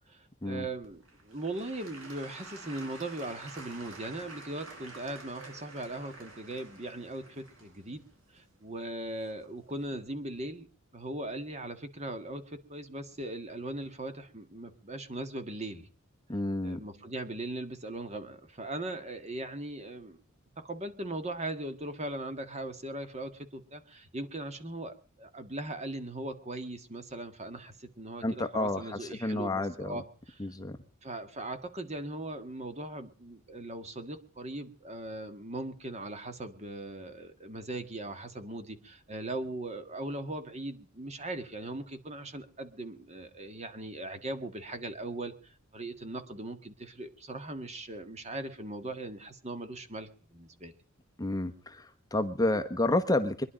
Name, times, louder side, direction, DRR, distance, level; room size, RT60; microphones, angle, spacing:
voice 1, 0.1-8.0 8.3-10.7 10.9-15.9 16.6-20.2 20.6-30.5 31.0-50.7, right 2 dB, 35° right, 9 dB, 1.8 m, -39 dB
Applause / Crowd, 0.8-9.7 10.3-10.4, right 3 dB, 70° right, 6.6 m, -49 dB
voice 2, 16.3-16.8 28.2-30.0 30.4-30.8 51.2-53.4, left 2 dB, 20° left, 8 dB, 1.0 m, -30 dB
24.0 x 11.0 x 5.1 m, 0.42 s
head